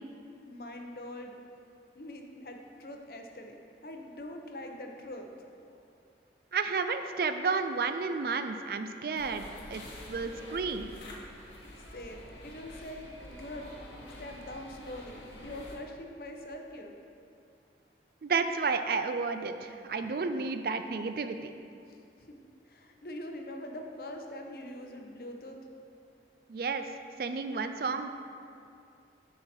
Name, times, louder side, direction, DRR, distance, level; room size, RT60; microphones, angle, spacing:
voice 1, 0.5-1.4 1.9-3.6 3.8-5.3 5.6-5.8 11.9-13.8 14.2-16.9 21.8-22.0 22.3-22.4 22.7-25.6, left 1 dB, 55° left, 3 dB, 0.8 m, -43 dB
voice 2, 6.5-9.8 10.1-10.9 18.2-21.5 26.5-26.9 27.2-28.1, right 4 dB, 55° right, 8 dB, 0.4 m, -31 dB
sound 1, 9.2-15.7, left 1 dB, 85° left, 1.5 m, -47 dB
9.7 x 4.8 x 4.3 m, 2.5 s
head